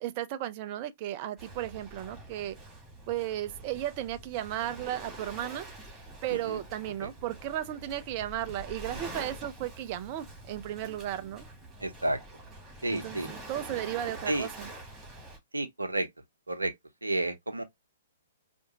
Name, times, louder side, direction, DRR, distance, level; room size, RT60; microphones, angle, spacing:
voice 1, 0.0-2.6 3.1-5.7 6.2-11.5 12.9-14.7, right 12 dB, 35° right, 0.5 m, -35 dB
Waves surf, 1.4-15.4, right 2 dB, 10° right, 2.5 m, -46 dB
voice 2, 6.3-6.6 7.0-7.1 11.8-12.2 12.8-13.3 14.3-14.5 15.5-16.1 16.5-16.7 17.0-17.6, right 1 dB, 85° right, 0.8 m, -31 dB
4.8 x 2.6 x 2.8 m
figure-of-eight pair, 120°, 0 cm